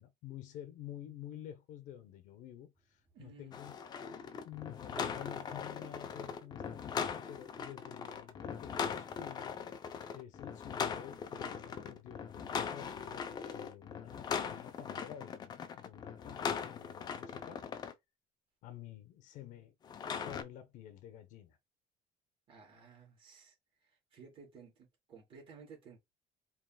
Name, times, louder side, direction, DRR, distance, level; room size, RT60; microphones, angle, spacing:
voice 1, 0.0-9.5 10.1-17.6 18.6-19.7 20.2-21.6, left 11 dB, 60° left, 0.9 m, -50 dB
sound 1, 2.8-9.8, right 1 dB, 10° right, 1.0 m, -59 dB
voice 2, 3.1-3.6 22.5-23.5 23.8-26.0, right 5 dB, 35° right, 2.7 m, -56 dB
sound 2, 3.5-17.9 19.8-20.4, left 7 dB, 30° left, 0.5 m, -40 dB
4.7 x 3.2 x 2.2 m
cardioid pair, 175°, 14 cm